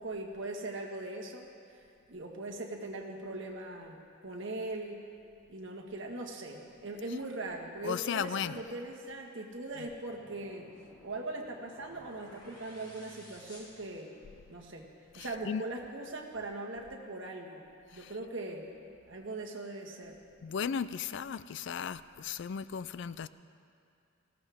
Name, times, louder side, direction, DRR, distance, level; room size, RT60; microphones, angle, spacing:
voice 1, 0.0-1.5 2.1-5.0 5.5-10.7 11.0-14.1 14.5-14.9 15.1-17.6 17.9-18.7 19.1-20.2, right 2 dB, 60° right, 0 dB, 1.7 m, -40 dB
voice 2, 7.8-8.6 9.8-9.9 15.1-15.6 17.9-18.2 20.4-23.3, left 7 dB, 60° left, 15 dB, 0.4 m, -36 dB
sound 1, 10.0-14.6, equal, 20° left, 2.7 m, -55 dB
19.5 x 16.0 x 3.6 m, 2.4 s
head